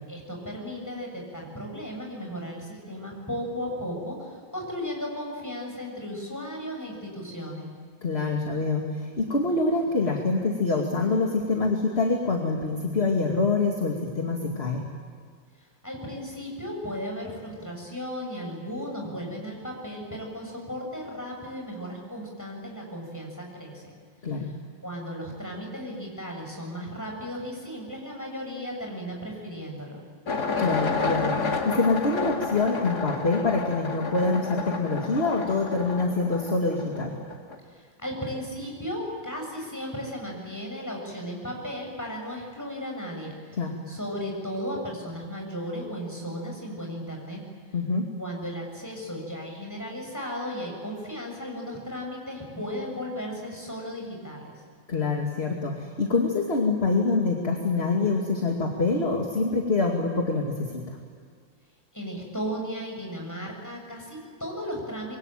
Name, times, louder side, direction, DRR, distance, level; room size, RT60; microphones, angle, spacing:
voice 1, 0.1-7.7 15.6-23.9 24.8-30.0 37.7-43.6 43.9-47.4 48.2-54.5 61.9-65.2, equal, 10° left, 0 dB, 7.3 m, -35 dB
voice 2, 8.0-14.8 24.2-24.5 30.6-37.1 43.5-43.7 47.7-48.1 54.9-61.0, left 3 dB, 30° left, 1 dB, 2.6 m, -25 dB
sound 1, 30.3-37.6, left 4 dB, 55° left, 2.9 m, -31 dB
26.5 x 23.0 x 9.1 m, 2.1 s
omnidirectional pair, 2.1 m